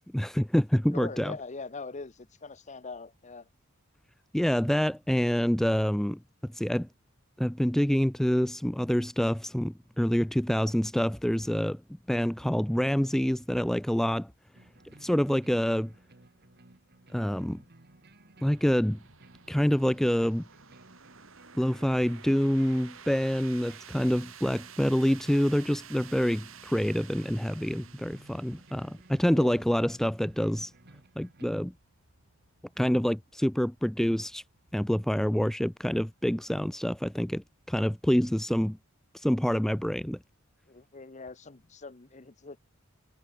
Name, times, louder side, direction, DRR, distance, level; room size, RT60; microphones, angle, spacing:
voice 1, 0.0-1.3 4.3-6.9 7.4-11.8 12.1-14.3 15.0-15.9 17.1-17.6 18.4-19.0 19.5-20.4 21.6-30.7 31.2-31.7 32.8-34.4 34.7-38.8 39.1-40.2, equal, ahead, 0.3 m, -27 dB
voice 2, 0.9-3.5 29.3-29.6 40.7-42.6, left 3 dB, 35° left, 0.9 m, -42 dB
sound 1, 14.5-31.5, right 2 dB, 50° right, 2.6 m, -57 dB
sound 2, 18.4-37.0, right 8 dB, 70° right, 4.9 m, -53 dB
head